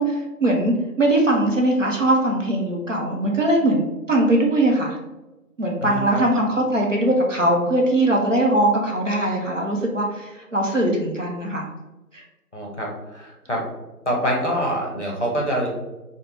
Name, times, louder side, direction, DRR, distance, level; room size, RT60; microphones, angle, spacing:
voice 1, 0.0-5.0 5.6-11.6 12.1-12.2, right 1 dB, 55° right, -1 dB, 0.6 m, -21 dB
voice 2, 5.8-6.2 12.5-13.6 14.1-15.7, equal, 50° left, -2 dB, 0.6 m, -25 dB
2.5 x 2.1 x 3.1 m, 1.1 s
figure-of-eight pair, 180°, 46 cm